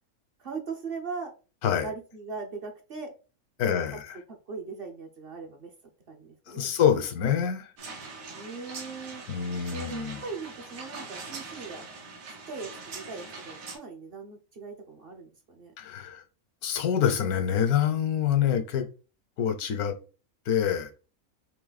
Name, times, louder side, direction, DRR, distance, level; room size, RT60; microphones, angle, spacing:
voice 1, 0.4-1.3 1.8-3.1 3.6-3.8 4.3-5.7 6.1-6.7 8.3-9.2 9.7-11.8 12.5-15.7, right 4 dB, 50° right, 0.8 m, -39 dB
voice 2, 3.6-4.0 6.5-7.7 9.3-10.2 15.8-16.2 16.6-18.9 19.4-19.9 20.5-20.9, left 8 dB, 90° left, 1.3 m, -26 dB
sound 1, 7.8-13.8, right 4 dB, 70° right, 1.4 m, -42 dB
3.9 x 3.2 x 4.0 m
omnidirectional pair, 1.5 m